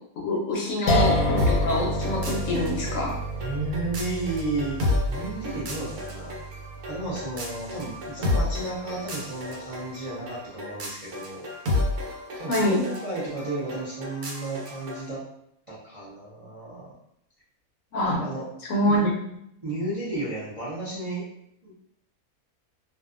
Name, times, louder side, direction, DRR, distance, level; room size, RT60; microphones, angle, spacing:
voice 1, 0.2-3.1 12.5-12.8 17.9-18.2 18.7-19.1, left 1 dB, 70° left, -1 dB, 0.8 m, -25 dB
sound 1, 0.9-7.8, equal, 90° left, 1.1 m, -29 dB
sound 2, 1.4-15.1, left 2 dB, 80° right, 1.1 m, -31 dB
voice 2, 3.4-6.3 6.9-11.5 12.4-15.2 15.7-16.9 18.1-18.5 18.8-19.0 19.6-21.3 21.6-21.7, right 2 dB, 45° right, -9 dB, 0.4 m, -33 dB
2.6 x 2.2 x 2.4 m, 0.74 s
omnidirectional pair, 1.6 m